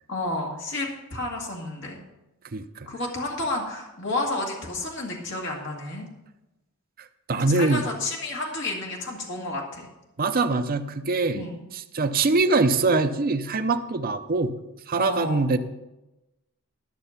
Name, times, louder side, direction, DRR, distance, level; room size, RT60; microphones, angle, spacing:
voice 1, 0.1-2.0 2.9-6.1 7.3-9.9 11.3-11.6 14.9-15.5, left 2 dB, 55° left, -1 dB, 1.9 m, -31 dB
voice 2, 7.3-7.8 10.2-11.4 11.7-14.5 14.9-15.6, right 3 dB, 40° right, 8 dB, 0.6 m, -23 dB
12.5 x 6.5 x 5.7 m, 0.98 s
head